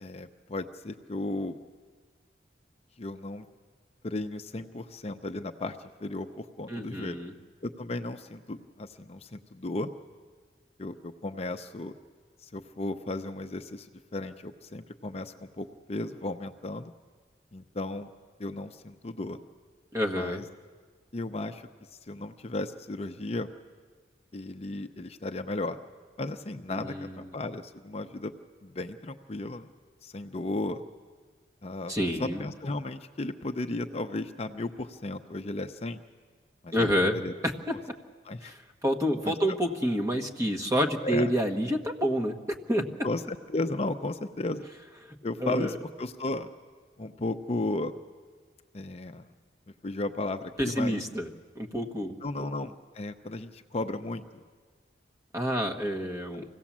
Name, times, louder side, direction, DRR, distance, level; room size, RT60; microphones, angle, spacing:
voice 1, 0.0-1.6 3.0-3.5 4.0-7.2 7.6-9.9 10.8-12.0 12.4-16.9 17.5-18.1 18.4-19.4 20.1-20.4 21.1-21.6 22.0-23.5 24.3-25.8 26.2-28.3 28.6-29.7 30.0-30.8 31.6-36.0 36.6-37.3 38.2-38.5 39.2-39.6 41.0-41.3 43.0-44.7 45.2-46.5 47.0-47.9 48.7-49.3 49.8-51.0 52.2-54.4, left 2 dB, 35° left, 8 dB, 0.6 m, -35 dB
voice 2, 6.7-7.3 19.9-20.4 26.7-27.1 31.9-32.4 36.7-37.2 37.4-37.7 38.4-42.3 42.7-42.8 45.4-45.8 50.6-51.3 51.5-52.2 55.3-56.4, equal, 20° right, 3 dB, 1.4 m, -28 dB
25.0 x 17.0 x 7.3 m, 1.5 s
head